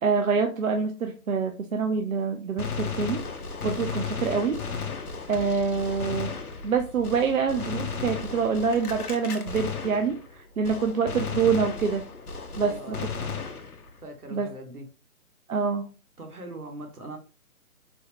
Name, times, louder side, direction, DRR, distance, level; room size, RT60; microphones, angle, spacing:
voice 1, 0.0-3.2 3.6-4.6 5.3-6.3 6.6-12.0 12.6-13.0 14.3-14.5 15.5-15.9, right 5 dB, 65° right, 5 dB, 0.5 m, -26 dB
Gunshot gunfire, 2.6-10.4 10.6-14.0, left 5 dB, 80° left, 0.8 m, -34 dB
voice 2, 12.5-13.4 14.0-14.9 16.2-17.2, right 1 dB, 80° right, 3 dB, 1.2 m, -41 dB
4.1 x 2.0 x 2.8 m, 0.33 s
figure-of-eight pair, 145°, 44 cm